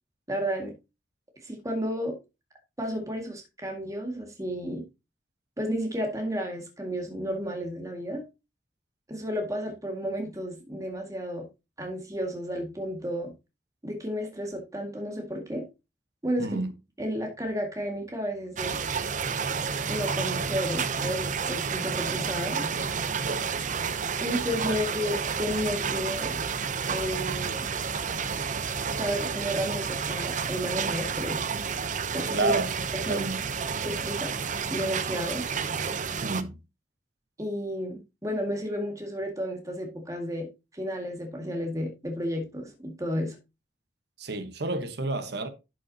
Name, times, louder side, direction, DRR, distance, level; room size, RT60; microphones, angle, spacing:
voice 1, 0.3-0.7 1.4-2.2 2.8-4.8 5.6-8.2 9.1-11.5 11.8-13.3 13.8-15.7 16.2-16.5 17.0-18.8 19.9-22.7 24.2-26.4 26.9-27.7 29.0-31.4 32.1-32.5 32.9-33.2 33.9-34.3 34.7-35.4 37.4-40.5 40.7-43.4, equal, 20° right, 1.9 m, -32 dB
voice 2, 16.4-16.7 24.6-24.8 32.3-32.7 33.0-33.4 36.2-36.6 44.2-45.5, right 2 dB, 65° right, 1.1 m, -29 dB
sound 1, 18.6-36.4, right 6 dB, 45° right, 0.6 m, -30 dB
11.0 x 6.2 x 2.8 m
head